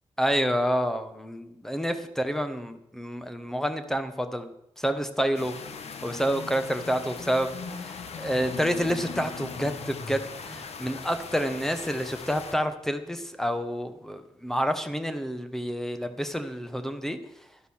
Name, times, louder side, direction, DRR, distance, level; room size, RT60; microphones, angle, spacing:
voice 1, 0.2-4.5 4.8-5.5 6.0-17.2, equal, 5° left, 9 dB, 1.1 m, -28 dB
sound 1, 5.4-12.5, left 5 dB, 85° left, 1.2 m, -39 dB
12.0 x 11.5 x 6.4 m, 0.79 s
wide cardioid pair, 165°, 11 cm